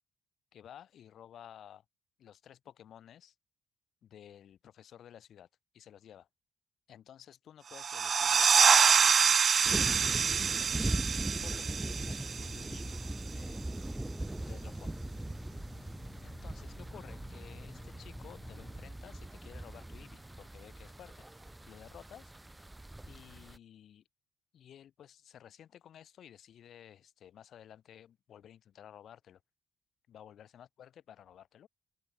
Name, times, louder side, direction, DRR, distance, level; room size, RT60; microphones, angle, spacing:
voice 1, 0.5-1.8 2.2-3.3 4.0-5.5 5.7-6.3 6.9-10.7 11.4-13.0 13.3-13.7 14.4-15.0 16.2-21.3 21.7-22.3 23.1-24.0 24.5-29.4 30.1-31.7, left 10 dB, 65° left, 6.4 m, -54 dB
sound 1, 7.7-13.1, right 6 dB, 45° right, 0.4 m, -26 dB
sound 2, 9.6-23.6, right 1 dB, 10° right, 3.0 m, -40 dB
Engine, 9.9-18.9, left 4 dB, 30° left, 5.2 m, -53 dB
open air
cardioid pair, 90°, 0 cm